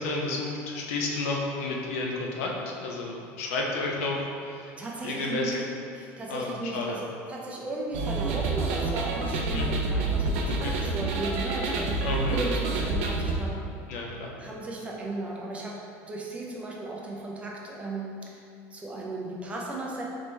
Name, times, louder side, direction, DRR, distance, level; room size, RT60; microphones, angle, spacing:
voice 1, 0.0-4.7 5.0-5.6 6.3-7.0 9.5-9.7 10.5-10.7 12.0-12.4 13.9-14.3, left 2 dB, 85° left, -1 dB, 0.7 m, -31 dB
voice 2, 4.8-5.5 5.9-13.6 14.4-15.8 16.1-18.3 18.7-20.0, right 2 dB, 15° right, -2 dB, 0.6 m, -35 dB
sound 1, 7.9-13.3, right 3 dB, 85° right, 0.5 m, -28 dB
4.1 x 3.0 x 3.3 m, 2.5 s
supercardioid pair, 130°, 7 cm